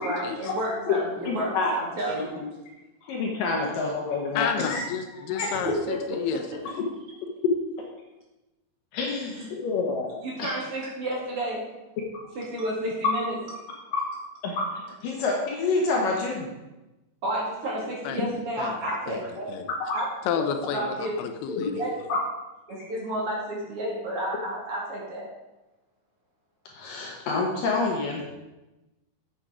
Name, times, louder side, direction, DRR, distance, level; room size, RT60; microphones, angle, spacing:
voice 1, 0.0-2.4 5.4-6.0 9.3-9.5 10.2-11.6 12.3-13.3 17.2-19.5 19.9-20.1 20.4-20.5 20.7-21.1 21.5-21.9 22.7-25.3, right 1 dB, 40° right, -3 dB, 2.6 m, -31 dB
voice 2, 1.3-1.7 2.1-2.4 3.0-4.8 5.2-5.5 8.9-10.1 10.4-10.5 13.9-14.0 14.4-16.5 19.8-19.9 21.6-21.7 22.1-22.2 26.7-28.2, left 3 dB, 65° left, -1 dB, 2.6 m, -28 dB
voice 3, 4.4-6.8 18.0-18.2 18.6-18.8 19.1-19.2 19.5-19.7 20.3-21.9, left 8 dB, 85° left, 7 dB, 2.7 m, -31 dB
8.9 x 7.3 x 4.9 m, 1.0 s
omnidirectional pair, 4.6 m